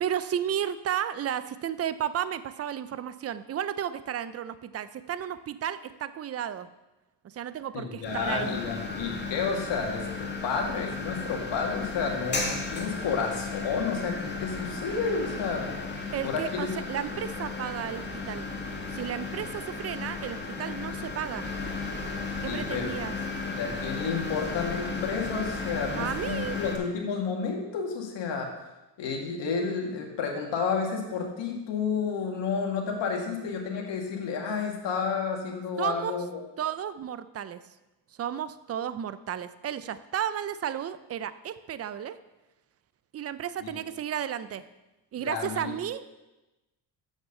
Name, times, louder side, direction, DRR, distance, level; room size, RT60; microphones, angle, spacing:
voice 1, 0.0-6.7 7.2-8.6 16.1-18.5 18.9-21.5 22.4-23.1 26.0-26.6 35.8-36.2 36.6-37.6 38.2-42.2 43.1-44.6 45.1-46.0, right 9 dB, 35° right, 14 dB, 0.5 m, -33 dB
voice 2, 7.7-15.7 16.2-16.7 22.5-22.9 23.6-28.5 29.0-36.4 43.6-43.8 45.2-45.7, left 5 dB, 70° left, 1 dB, 2.1 m, -31 dB
sound 1, 8.0-26.8, left 3 dB, 25° left, 2.1 m, -35 dB
7.4 x 6.4 x 6.8 m, 1.0 s
cardioid pair, 85°, 44 cm